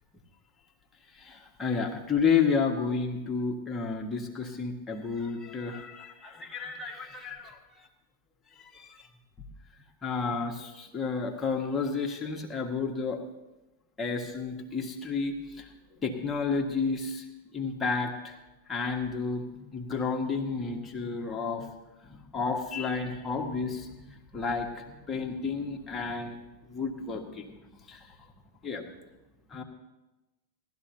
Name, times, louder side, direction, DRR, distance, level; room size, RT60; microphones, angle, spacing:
voice 1, 1.2-7.6 8.7-9.0 10.0-13.2 14.0-15.7 16.0-17.2 17.5-18.4 18.7-19.4 19.7-21.7 22.1-23.9 24.3-26.4 26.7-27.5 27.9-28.0 28.6-28.8 29.5-29.6, left 5 dB, 15° left, 1 dB, 1.6 m, -31 dB
18.0 x 13.0 x 2.9 m, 1.0 s
figure-of-eight pair, 90°, 0 cm